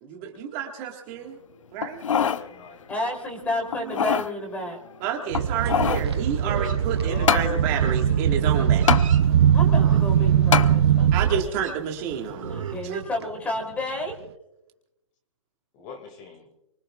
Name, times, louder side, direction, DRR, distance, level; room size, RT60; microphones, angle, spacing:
voice 1, 0.0-1.4 1.7-2.0 5.0-8.9 11.1-12.4 12.8-13.0, right 8 dB, 25° right, 2 dB, 1.7 m, -30 dB
sound 1, 1.8-2.4 2.9-3.0 3.7-4.3 5.3-6.1 7.3-7.5 8.9-9.1 10.5-10.7 11.3-11.4, left 7 dB, 75° left, 0.8 m, -23 dB
voice 2, 2.1-3.0 7.0-8.4 15.7-16.5, left 5 dB, 30° left, 6 dB, 2.1 m, -39 dB
voice 3, 2.9-4.8 6.4-6.5 9.5-11.4 12.2-14.1, left 1 dB, 10° left, 3 dB, 3.1 m, -31 dB
sound 2, 5.3-11.5 12.1-12.3 13.2-13.3 14.1-14.2, right 9 dB, 55° right, 0.6 m, -21 dB
Livestock farm animals working animals, 5.5-12.8, right 6 dB, 75° right, 2.1 m, -39 dB
24.5 x 23.5 x 2.4 m, 0.89 s
hypercardioid pair, 155°, 17 cm